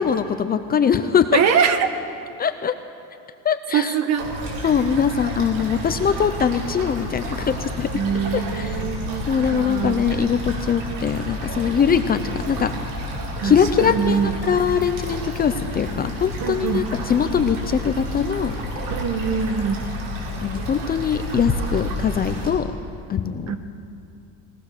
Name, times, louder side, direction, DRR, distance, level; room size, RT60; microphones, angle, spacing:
voice 1, 0.0-1.4 2.4-2.7 3.4-4.0 4.6-8.0 8.3-8.8 9.3-12.7 13.4-18.5 20.4-22.7 23.1-23.5, left 7 dB, 25° left, 9 dB, 0.7 m, -22 dB
voice 2, 1.3-1.9 3.7-4.3 7.9-10.0 13.4-14.4 16.4-16.9 18.9-19.9 23.5-23.6, right 7 dB, 45° right, 8 dB, 1.6 m, -23 dB
sound 1, 4.2-22.5, equal, 70° right, 6.6 m, -30 dB
21.0 x 18.5 x 6.8 m, 2.6 s
cardioid pair, 140°, 37 cm